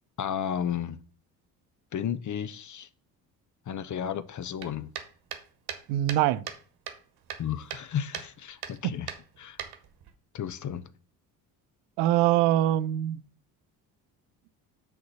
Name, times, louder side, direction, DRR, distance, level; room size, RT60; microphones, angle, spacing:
voice 1, 0.2-1.0 1.9-2.9 3.7-4.9 7.4-9.1 9.4-9.6 10.3-10.8, left 9 dB, 40° left, 0.7 m, -33 dB
sound 1, 4.6-6.6 6.9-7.9 8.1-8.3 8.6-8.8 9.1-10.1, right 8 dB, 50° right, 1.3 m, -38 dB
voice 2, 5.9-6.4 8.8-8.9 12.0-13.2, right 13 dB, 75° right, 0.6 m, -23 dB
6.5 x 4.5 x 5.4 m
hypercardioid pair, 55°, 48 cm